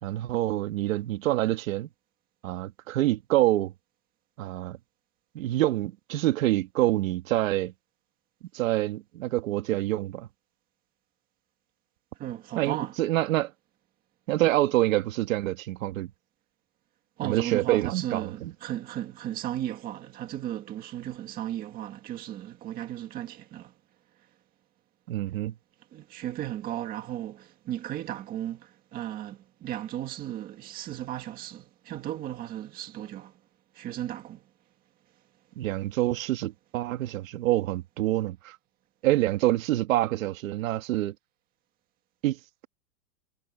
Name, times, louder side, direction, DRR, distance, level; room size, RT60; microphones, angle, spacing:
voice 1, 0.0-1.9 2.4-3.7 4.4-4.8 5.3-7.7 8.5-10.3 12.6-13.5 14.3-16.1 17.2-18.5 25.1-25.5 35.6-38.6 39.0-41.1 42.2-42.7, right 15 dB, 60° right, 2.2 m, -26 dB
voice 2, 12.2-12.9 17.2-23.7 25.9-33.3 33.7-34.4, right 12 dB, 20° right, 1.7 m, -35 dB
supercardioid pair, 180°, 46 cm